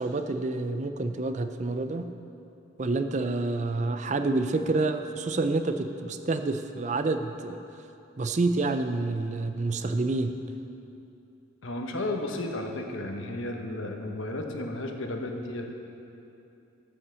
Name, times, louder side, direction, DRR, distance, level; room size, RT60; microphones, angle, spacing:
voice 1, 0.0-2.1 2.8-7.6 8.2-10.3, right 3 dB, 35° right, 8 dB, 0.4 m, -28 dB
voice 2, 11.6-15.7, left 1 dB, 75° left, 3 dB, 1.1 m, -33 dB
12.5 x 5.7 x 6.9 m, 2.8 s
head